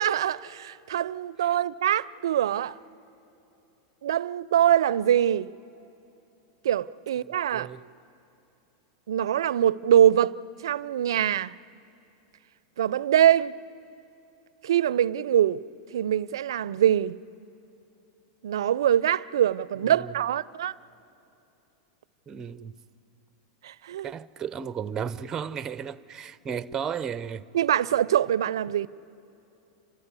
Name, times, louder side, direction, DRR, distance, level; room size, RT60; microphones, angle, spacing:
voice 1, 0.0-2.8 4.0-5.5 6.6-7.7 9.1-10.4 10.6-11.6 12.8-13.5 14.6-15.6 15.9-17.2 18.4-20.7 23.6-24.1 27.5-28.9, right 10 dB, 85° right, 0.4 m, -23 dB
voice 2, 7.5-7.8 19.8-20.2 22.3-22.8 24.0-27.4, right 7 dB, 25° right, 0.6 m, -34 dB
29.5 x 13.5 x 9.7 m
hypercardioid pair, 120°, 2 cm